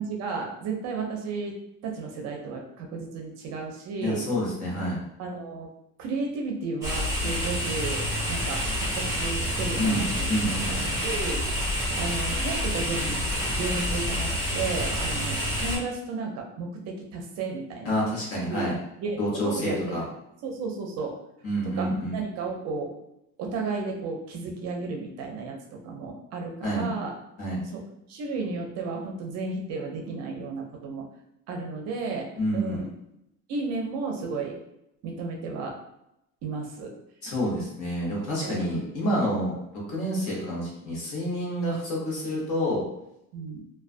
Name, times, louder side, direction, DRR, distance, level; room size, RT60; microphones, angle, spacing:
voice 1, 0.0-1.6 1.8-4.2 5.2-5.7 6.0-11.4 12.0-13.2 13.4-18.0 18.5-18.6 19.0-19.2 19.4-20.1 20.4-21.1 21.6-22.9 23.4-27.1 27.7-27.8 28.1-31.1 31.5-32.9 33.5-34.5 35.0-35.8 36.4-36.9 38.4-38.9 43.3-43.6, right 4 dB, 55° right, 1 dB, 0.5 m, -33 dB
voice 2, 4.0-5.0 9.8-10.7 17.8-18.8 19.2-20.0 21.4-22.2 26.6-26.9 27.4-27.6 32.4-32.8 37.2-42.8, equal, 45° left, -4 dB, 0.9 m, -28 dB
sound 1, 6.8-15.8, equal, 10° right, 0.6 m, -28 dB
2.3 x 2.2 x 2.4 m, 0.83 s
cardioid pair, 170°, 31 cm